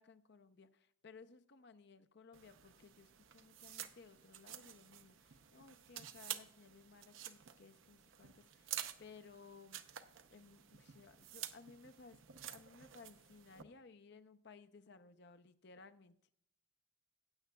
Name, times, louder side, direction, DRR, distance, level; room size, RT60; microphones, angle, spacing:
voice 1, 0.0-9.8 10.3-12.2 12.5-16.1, left 4 dB, 55° left, 10 dB, 0.6 m, -60 dB
sound 1, 2.3-13.6, right 11 dB, 75° right, 0.7 m, -50 dB
15.5 x 9.2 x 2.3 m, 0.67 s
head